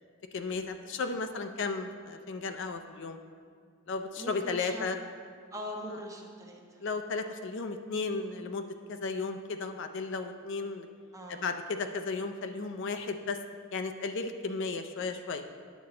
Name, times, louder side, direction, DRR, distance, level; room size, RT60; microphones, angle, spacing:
voice 1, 0.3-3.2 3.9-5.0 6.8-10.9 11.3-13.4 13.7-15.4, left 4 dB, 60° left, 7 dB, 0.5 m, -34 dB
voice 2, 4.2-4.9 5.5-6.8 11.1-11.4, equal, 15° right, 0 dB, 0.8 m, -41 dB
9.4 x 6.9 x 3.8 m, 2.2 s
head